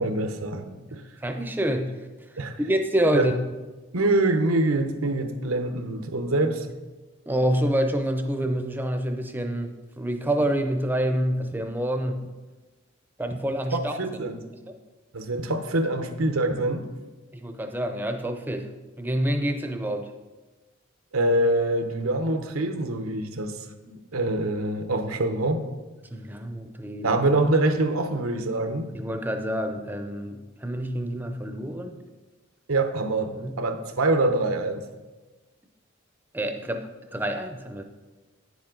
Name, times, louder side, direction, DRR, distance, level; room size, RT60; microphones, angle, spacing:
voice 1, 0.0-1.0 2.4-2.6 3.1-3.3 3.9-6.7 13.7-14.4 15.1-16.9 21.1-25.6 27.0-28.9 32.7-34.8, right 2 dB, 85° right, 7 dB, 0.9 m, -25 dB
voice 2, 0.9-2.1 2.6-3.3 7.3-12.3 13.2-13.9 14.7-14.8 17.3-20.1 26.1-27.1 28.9-32.0 33.3-33.6 36.3-37.8, right 1 dB, 10° right, 6 dB, 0.5 m, -27 dB
9.9 x 7.3 x 3.8 m, 1.2 s
head